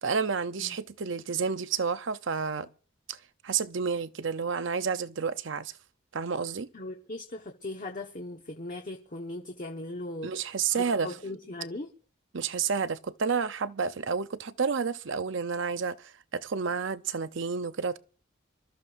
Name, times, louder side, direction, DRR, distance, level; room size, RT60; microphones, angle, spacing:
voice 1, 0.0-2.7 3.1-3.2 3.4-5.7 6.1-6.7 10.2-11.1 12.3-18.0, right 5 dB, 65° right, 0.7 m, -30 dB
voice 2, 6.7-11.9, left 2 dB, 40° left, 1.2 m, -39 dB
26.5 x 13.5 x 2.6 m
head